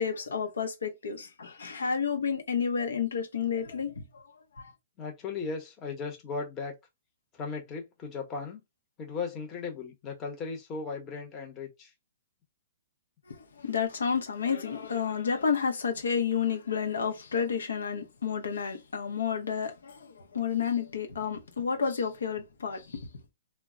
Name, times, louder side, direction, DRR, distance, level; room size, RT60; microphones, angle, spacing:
voice 1, 0.0-4.0 4.6-4.7 13.3-23.0, left 6 dB, 90° left, 0.7 m, -30 dB
voice 2, 5.0-6.8 7.3-8.6 9.0-11.9, left 4 dB, 25° left, 0.8 m, -37 dB
2.1 x 2.0 x 3.6 m
hypercardioid pair, 145°, 0 cm